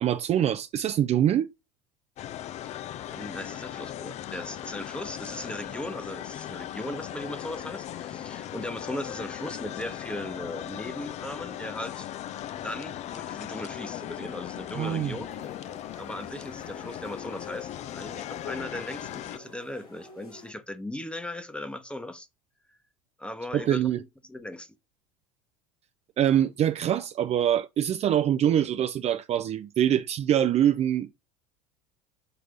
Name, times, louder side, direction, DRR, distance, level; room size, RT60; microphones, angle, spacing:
voice 1, 0.0-1.5 14.8-15.2 23.5-24.0 26.2-31.1, right 10 dB, 35° right, 0.5 m, -24 dB
sound 1, 2.2-19.4, left 12 dB, 40° left, 0.5 m, -38 dB
voice 2, 3.0-12.1 12.6-15.4 16.0-22.3 23.2-24.8, left 1 dB, 5° left, 1.0 m, -38 dB
sound 2, 15.2-20.5, left 2 dB, 90° left, 2.0 m, -50 dB
6.7 x 3.3 x 5.2 m
hypercardioid pair, 75°, 18 cm